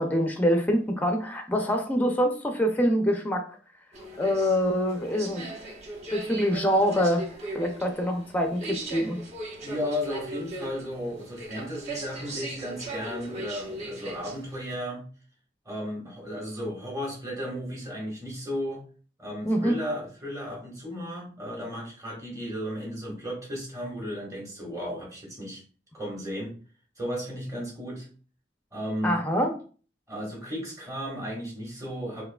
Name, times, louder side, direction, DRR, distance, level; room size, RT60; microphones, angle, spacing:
voice 1, 0.0-3.4 4.2-5.5 6.1-7.2 7.5-9.2 19.4-19.8 29.0-29.5, equal, 10° left, 4 dB, 0.5 m, -25 dB
sound 1, 3.9-14.6, right 2 dB, 40° right, 1.1 m, -39 dB
voice 2, 9.6-15.0 15.6-18.8 19.2-25.6 25.9-26.5 27.0-28.1 28.7-29.2 30.1-32.2, equal, 20° right, -3 dB, 1.4 m, -34 dB
4.6 x 2.7 x 2.3 m, 0.40 s
head